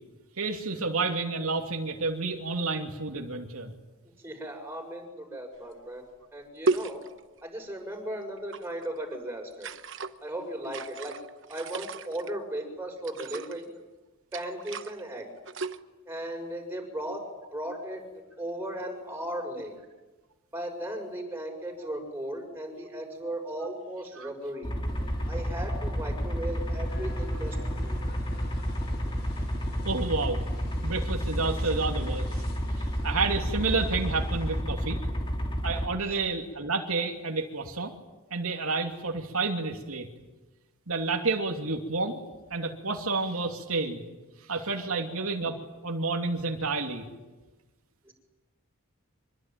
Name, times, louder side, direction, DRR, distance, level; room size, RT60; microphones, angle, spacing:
voice 1, 0.4-3.7 24.2-24.3 29.8-30.4 30.8-32.4 32.8-35.0 35.6-37.9 38.3-40.1 40.9-42.2 42.5-44.0 44.5-45.6 45.8-47.1, right 3 dB, 80° right, 2 dB, 2.8 m, -30 dB
voice 2, 4.2-6.0 6.3-7.0 7.4-9.7 10.2-11.2 11.5-13.7 14.3-15.3 16.1-17.2 17.5-18.0 18.4-19.7 20.5-24.7 25.3-28.0 31.5-31.6 36.0-36.2 44.9-45.0 48.0-48.1, right 1 dB, 10° right, 2 dB, 6.8 m, -36 dB
sound 1, 5.7-5.8 6.6-7.4 8.4-8.9 9.5-10.1 10.6-12.3 13.0-13.6 14.3-15.0 15.4-15.8, right 3 dB, 55° right, 1.1 m, -33 dB
diesel pump stationary ext, 24.6-35.9, equal, 20° left, 3.8 m, -30 dB
sound 2, 24.9-34.6, left 1 dB, 50° left, 6.2 m, -47 dB
26.0 x 23.5 x 9.3 m, 1.1 s
head